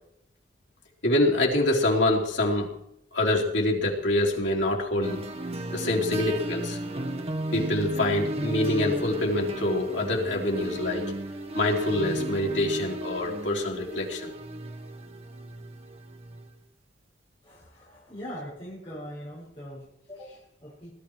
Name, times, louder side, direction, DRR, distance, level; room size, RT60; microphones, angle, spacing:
voice 1, 1.0-2.7 3.1-5.2 5.7-6.8 7.5-11.0 11.5-14.3, left 1 dB, 90° left, -1 dB, 3.9 m, -25 dB
sound 1, 5.0-16.5, right 1 dB, 35° right, 1.5 m, -34 dB
voice 2, 17.4-20.9, equal, 30° left, -7 dB, 6.3 m, -42 dB
20.5 x 12.0 x 4.8 m, 0.77 s
head